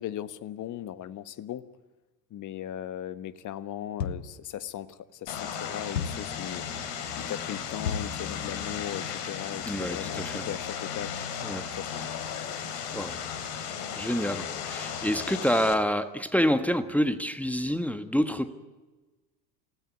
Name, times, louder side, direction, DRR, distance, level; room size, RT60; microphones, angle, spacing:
voice 1, 0.0-1.6 2.3-6.7 7.1-11.1 11.7-12.1 12.3-12.4, left 11 dB, 35° left, 14 dB, 1.4 m, -38 dB
sound 1, 4.0-4.4 5.9-6.4 7.8-8.2, left 7 dB, 80° left, 1.3 m, -32 dB
Vehicle, 5.3-15.7, left 8 dB, 55° left, 3.7 m, -35 dB
voice 2, 9.6-10.5 11.4-11.7 12.9-13.2 14.0-18.5, equal, 5° left, 9 dB, 1.5 m, -27 dB
27.5 x 17.0 x 9.7 m, 1.2 s
hypercardioid pair, 80°, 49 cm